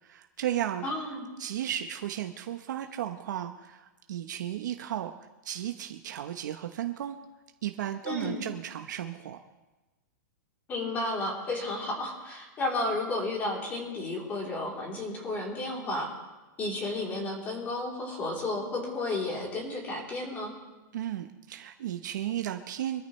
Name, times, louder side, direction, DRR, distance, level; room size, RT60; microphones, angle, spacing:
voice 1, 0.0-0.9 1.4-5.1 5.4-7.2 7.6-9.4 20.9-23.0, right 11 dB, 70° right, 6 dB, 0.9 m, -34 dB
voice 2, 0.8-1.3 8.0-8.4 10.7-16.1 16.6-20.5, left 2 dB, 15° left, -1 dB, 3.4 m, -32 dB
24.5 x 13.5 x 3.2 m, 1.1 s
supercardioid pair, 170°, 10 cm